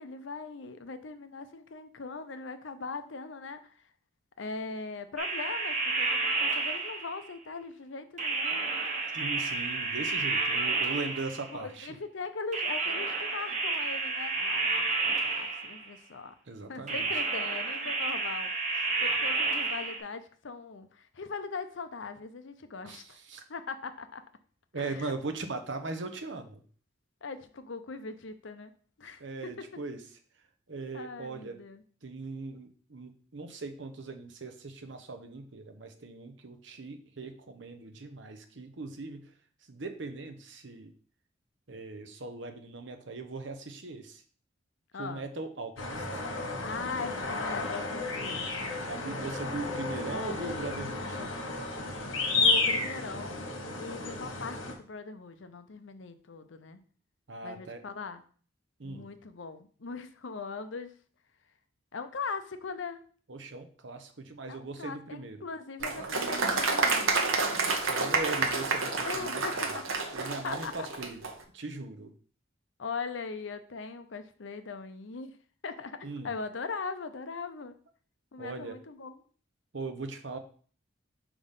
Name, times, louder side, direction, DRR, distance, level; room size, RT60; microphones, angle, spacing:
voice 1, 0.0-3.8 4.4-8.7 11.5-16.3 16.7-23.2 23.5-24.2 24.8-25.2 27.2-28.7 29.0-29.7 30.9-31.8 44.9-45.3 46.4-48.5 50.0-51.3 52.4-53.5 53.8-56.8 57.4-58.2 58.8-60.9 61.9-63.0 64.5-67.2 69.0-69.8 70.4-70.7 72.8-75.3 75.6-76.0 76.2-77.7 78.3-79.2, left 4 dB, 70° left, 10 dB, 0.6 m, -40 dB
sound 1, 5.2-7.3 8.2-11.6 12.5-15.9 16.9-20.0, right 3 dB, 35° right, 1.1 m, -30 dB
voice 2, 9.1-12.0 16.5-17.1 22.8-23.4 24.7-26.6 29.2-30.0 30.7-31.6 32.0-39.3 39.7-40.9 41.7-44.2 45.0-46.2 48.8-51.3 57.3-57.8 58.8-59.1 63.3-65.5 67.7-69.8 70.1-71.2 71.5-72.1 76.0-76.3 78.4-78.8 79.7-80.4, right 3 dB, 70° right, 7 dB, 0.8 m, -39 dB
sound 2, 45.8-54.7, left 3 dB, 85° left, 1.3 m, -32 dB
Applause, 65.8-71.3, right 4 dB, 90° right, 1.0 m, -29 dB
4.9 x 3.5 x 5.6 m, 0.44 s
head